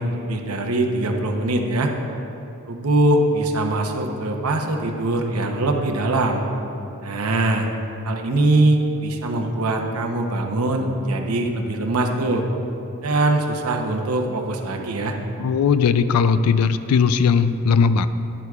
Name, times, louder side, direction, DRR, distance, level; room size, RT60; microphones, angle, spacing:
voice 1, 0.0-1.9 2.7-6.4 7.0-7.7 8.0-12.4 13.0-15.2, right 2 dB, 85° right, 2 dB, 0.8 m, -22 dB
voice 2, 15.4-18.1, left 6 dB, 85° left, 12 dB, 0.3 m, -18 dB
11.0 x 10.0 x 2.4 m, 2.8 s
head